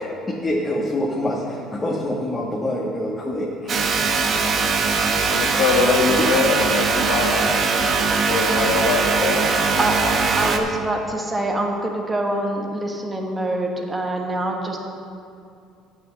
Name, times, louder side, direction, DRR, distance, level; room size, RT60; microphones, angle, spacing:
voice 1, 0.0-3.5 4.4-4.5 6.1-7.3, left 1 dB, 20° left, -3 dB, 1.3 m, -26 dB
sound 1, 3.7-10.6, right 4 dB, 45° right, 0.9 m, -21 dB
voice 2, 5.3-7.5 8.1-9.4, left 4 dB, 85° left, 0 dB, 1.7 m, -22 dB
voice 3, 9.8-14.8, right 1 dB, 15° right, 1 dB, 1.4 m, -25 dB
8.9 x 6.3 x 7.4 m, 2.4 s
cardioid pair, 105°, 0 cm